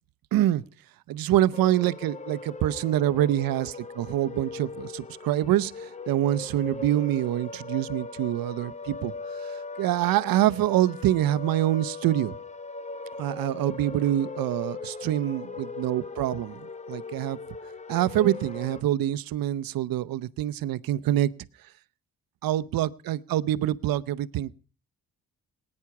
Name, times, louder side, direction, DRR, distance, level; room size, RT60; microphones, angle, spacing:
voice 1, 0.3-0.6 1.1-9.1 9.4-12.4 13.2-17.4 17.9-21.3 22.4-24.5, right 13 dB, 80° right, 0.7 m, -26 dB
sound 1, 1.5-18.8, left 3 dB, 20° left, 0.8 m, -39 dB
19.5 x 9.8 x 5.9 m
cardioid pair, 115°, 34 cm